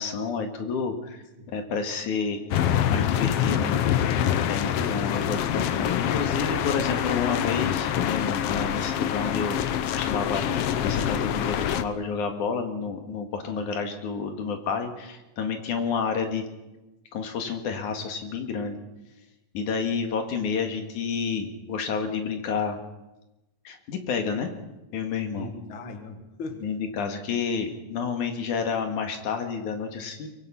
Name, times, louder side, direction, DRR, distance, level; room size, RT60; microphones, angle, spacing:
voice 1, 0.0-2.4 2.8-3.8 4.5-10.4 10.8-16.5 17.1-18.8 19.5-22.8 23.6-24.5 24.9-25.5 26.6-30.3, left 5 dB, 85° left, 5 dB, 3.3 m, -30 dB
sound 1, 2.5-11.8, left 10 dB, 65° left, 1.6 m, -25 dB
voice 2, 4.9-5.6 25.4-26.7, left 3 dB, 45° left, 6 dB, 2.5 m, -39 dB
23.5 x 22.5 x 5.8 m, 1.0 s
omnidirectional pair, 3.4 m